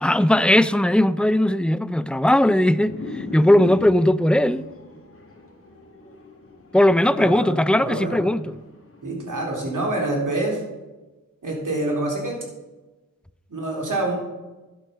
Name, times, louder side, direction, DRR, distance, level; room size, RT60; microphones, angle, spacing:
voice 1, 0.0-4.7 6.7-8.6, left 1 dB, 5° left, 0.4 m, -18 dB
sound 1, 2.9-9.1, left 3 dB, 40° left, 2.2 m, -40 dB
voice 2, 7.0-8.2 9.0-10.6 11.4-12.4 13.5-14.2, right 2 dB, 65° right, 3.6 m, -26 dB
11.0 x 8.4 x 5.7 m
cardioid pair, 55°, 34 cm